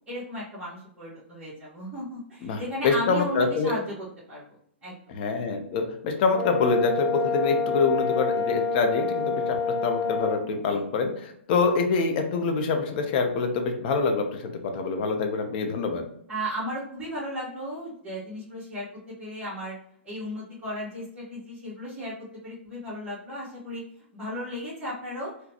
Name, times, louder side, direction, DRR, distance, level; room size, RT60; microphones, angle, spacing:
voice 1, 0.1-4.4 4.8-4.9 10.7-10.8 16.3-19.7 20.0-22.1 22.4-23.8 24.1-25.3, equal, 15° right, -11 dB, 1.5 m, -35 dB
voice 2, 2.4-3.7 5.1-16.0, left 4 dB, 45° left, 5 dB, 0.6 m, -25 dB
Brass instrument, 6.3-10.4, left 4 dB, 5° left, 1.4 m, -27 dB
3.9 x 2.2 x 2.8 m, 0.69 s
hypercardioid pair, 125°, 7 cm